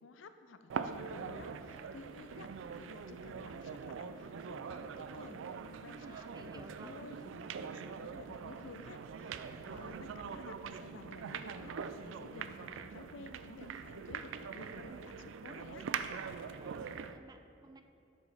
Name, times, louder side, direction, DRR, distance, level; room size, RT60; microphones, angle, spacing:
voice 1, 0.0-15.9, left 3 dB, 90° left, 10 dB, 0.5 m, -53 dB
sound 1, 0.7-17.2, right 6 dB, 85° right, 0.4 m, -43 dB
voice 2, 6.0-7.0 16.6-17.8, right 2 dB, 20° right, 6 dB, 0.5 m, -55 dB
11.5 x 7.0 x 3.4 m, 2.7 s
head